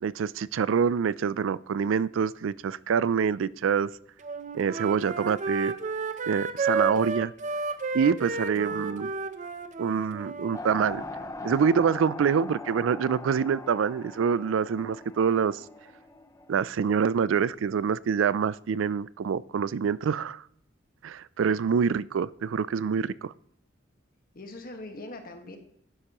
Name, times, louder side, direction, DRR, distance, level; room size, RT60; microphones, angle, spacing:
voice 1, 0.0-3.9 4.5-5.7 6.3-7.3 7.9-9.1 9.8-11.0 11.4-15.6 16.5-20.4 21.0-23.3, right 6 dB, 80° right, 0.4 m, -26 dB
Wind instrument woodwind instrument, 4.2-10.6, right 4 dB, 40° right, 0.6 m, -31 dB
voice 2, 8.5-9.0 21.5-21.6 24.3-25.6, left 2 dB, 50° left, 1.5 m, -42 dB
sound 1, 10.5-16.6, left 2 dB, 15° left, 0.7 m, -41 dB
11.5 x 9.7 x 3.0 m
head